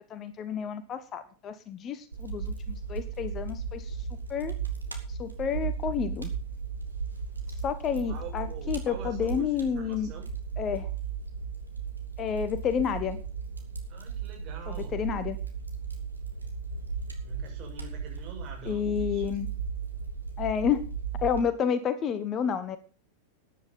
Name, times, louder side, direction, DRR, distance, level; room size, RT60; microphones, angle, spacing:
voice 1, 0.1-4.0 4.3-4.5 5.1-6.3 7.6-10.1 10.6-10.9 12.2-13.2 14.7-15.4 18.6-19.5 20.4-20.8 21.2-22.8, left 7 dB, 30° left, 13 dB, 1.1 m, -30 dB
Fire, 2.1-21.4, right 6 dB, 80° right, 2.5 m, -36 dB
voice 2, 8.0-10.3 13.9-15.0 17.2-19.2 21.6-21.7, right 7 dB, 35° right, 1 dB, 6.9 m, -45 dB
14.0 x 9.9 x 5.5 m, 0.36 s
figure-of-eight pair, 90°, 0 cm